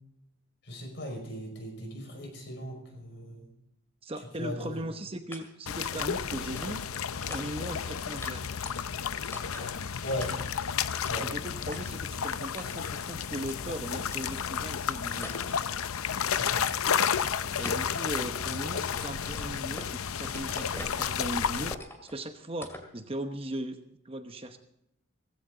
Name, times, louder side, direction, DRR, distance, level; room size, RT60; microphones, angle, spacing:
voice 1, 0.6-3.5 4.4-4.7 10.0-10.3 11.1-11.3 16.3-16.7, left 1 dB, 55° left, 3 dB, 5.5 m, -37 dB
voice 2, 4.0-6.8 7.3-8.4 11.2-15.3 17.6-21.8 22.0-23.8 24.0-24.6, right 1 dB, 25° right, 7 dB, 0.9 m, -38 dB
sound 1, 5.3-5.4 5.8-6.0 6.6-7.0 7.3-7.8 8.2-8.3 8.7-9.1 9.3-9.7 10.2-10.6 11.0-11.3 11.7-11.8 12.6-12.9 13.5-13.6 14.1-14.2 14.7-14.8 15.2-15.6 16.3-16.7 17.0-17.2 17.6-17.9 18.2-19.9 20.2-21.1 21.5-22.1 22.6-22.9, left 1 dB, 10° left, 2.3 m, -44 dB
sound 2, 5.7-21.7, left 7 dB, 80° left, 0.6 m, -32 dB
17.5 x 15.5 x 3.9 m, 0.81 s
head